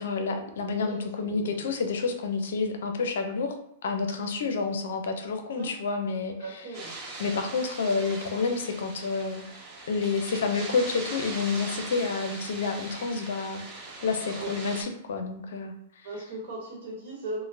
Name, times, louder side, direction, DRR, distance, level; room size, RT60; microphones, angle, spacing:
voice 1, 0.0-3.6 3.8-6.6 7.2-9.4 9.9-16.1, left 4 dB, 70° left, 6 dB, 0.5 m, -29 dB
voice 2, 0.7-1.7 5.5-5.7 6.4-6.9 10.5-10.6 14.4-14.5 16.0-17.4, right 2 dB, 65° right, -1 dB, 1.0 m, -38 dB
sound 1, 6.7-14.8, right 2 dB, 30° right, 1.0 m, -40 dB
4.3 x 2.1 x 2.6 m, 0.77 s
hypercardioid pair, 115°, 0 cm